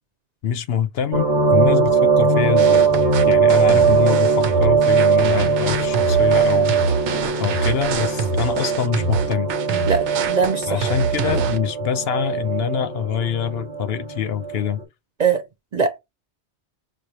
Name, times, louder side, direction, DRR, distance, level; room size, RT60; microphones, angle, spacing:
voice 1, 0.4-3.0 3.3-6.8 7.4-9.5 10.7-14.8, left 9 dB, 65° left, 0.8 m, -25 dB
sound 1, 1.1-14.8, right 5 dB, 25° right, 1.0 m, -20 dB
sound 2, 2.6-11.6, right 4 dB, 80° right, 1.0 m, -25 dB
voice 2, 9.9-10.8 15.2-15.4 15.7-16.0, right 5 dB, 50° right, 0.6 m, -21 dB
6.4 x 2.3 x 2.8 m
omnidirectional pair, 1.2 m